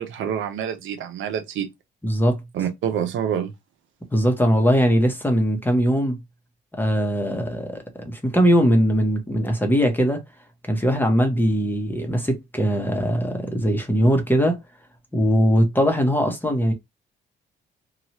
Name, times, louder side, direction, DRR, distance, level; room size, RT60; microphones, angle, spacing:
voice 1, 0.0-1.7 2.5-3.5, right 9 dB, 75° right, 0.7 m, -27 dB
voice 2, 2.0-2.4 4.1-6.2 6.8-10.2 10.7-14.6 15.1-16.7, equal, 10° left, 0.8 m, -20 dB
2.9 x 2.3 x 2.9 m
cardioid pair, 90°, 20 cm